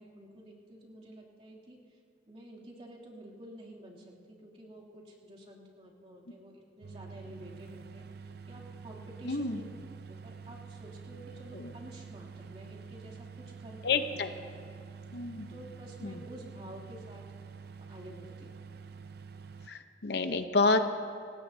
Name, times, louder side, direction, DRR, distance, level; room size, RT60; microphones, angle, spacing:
voice 1, 0.0-2.0 2.3-9.7 10.1-14.8 15.5-17.2 17.9-18.5, right 1 dB, 35° right, -5 dB, 2.8 m, -50 dB
sound 1, 6.8-19.7, right 5 dB, 55° right, 0.5 m, -47 dB
voice 2, 9.2-9.6 11.5-11.7 13.8-14.3 15.1-15.5 16.0-16.2 19.7-20.8, left 3 dB, 60° left, 8 dB, 0.8 m, -29 dB
25.5 x 18.5 x 2.7 m, 2.3 s
head